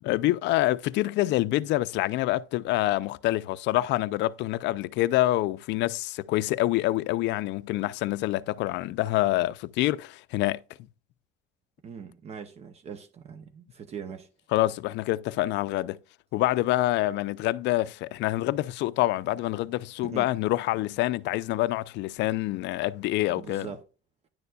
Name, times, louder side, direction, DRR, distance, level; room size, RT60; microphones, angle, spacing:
voice 1, 0.0-10.6 14.5-16.0 16.3-23.7, left 16 dB, 65° left, 0.5 m, -26 dB
voice 2, 11.8-14.3 20.1-20.3 23.4-23.8, right 6 dB, 35° right, 0.6 m, -41 dB
10.0 x 6.8 x 2.3 m
cardioid pair, 160°, 20 cm